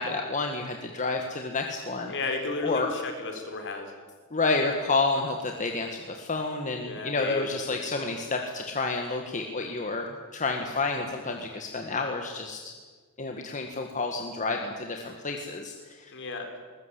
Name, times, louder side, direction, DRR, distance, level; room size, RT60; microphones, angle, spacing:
voice 1, 0.0-2.1 2.6-2.9 4.3-10.1 10.3-12.6 13.2-16.1, left 3 dB, 35° left, 3 dB, 1.7 m, -29 dB
voice 2, 2.1-3.9 6.8-7.9 16.1-16.5, left 3 dB, 55° left, 5 dB, 4.1 m, -33 dB
21.5 x 19.5 x 8.4 m, 1.5 s
head